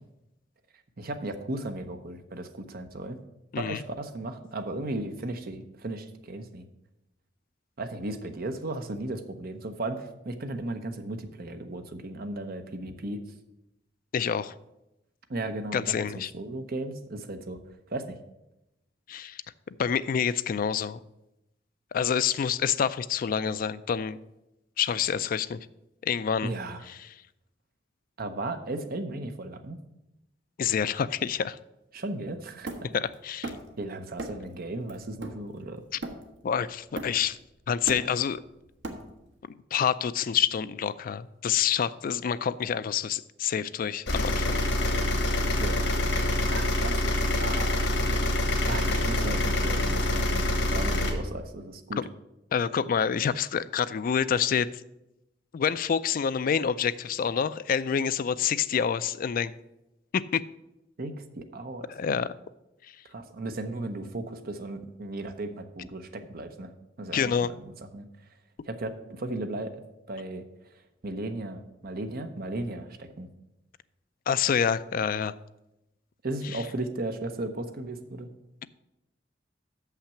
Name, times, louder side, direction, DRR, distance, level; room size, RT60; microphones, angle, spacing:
voice 1, 1.0-3.2 3.6-6.7 7.8-13.2 15.3-17.6 17.9-18.2 26.4-26.8 28.2-29.8 31.9-32.9 33.8-35.8 45.4-45.8 46.5-47.0 47.4-48.4 48.7-50.4 50.7-52.0 61.0-61.9 63.1-66.7 67.0-68.1 68.6-69.7 70.1-70.4 71.0-73.3 76.2-78.3, right 2 dB, 55° right, 7 dB, 0.8 m, -36 dB
voice 2, 14.1-14.5 15.7-16.3 19.1-19.4 19.8-21.0 21.9-24.2 24.8-25.7 26.0-26.5 26.9-27.0 30.6-31.6 32.9-33.6 36.4-37.4 37.7-38.4 39.7-44.6 52.5-54.7 55.5-59.5 60.1-60.4 61.9-62.3 62.8-63.0 67.1-67.5 74.3-75.3 76.5-76.6, left 7 dB, 50° left, 15 dB, 0.3 m, -27 dB
Hammer, 32.7-33.8 34.2-34.5 34.9-36.5 37.0-37.4 37.7-39.4, right 2 dB, 75° right, 1.2 m, -38 dB
sound 1, 44.1-51.1, left 1 dB, 85° left, 1.5 m, -26 dB
6.6 x 5.8 x 7.1 m, 0.89 s
head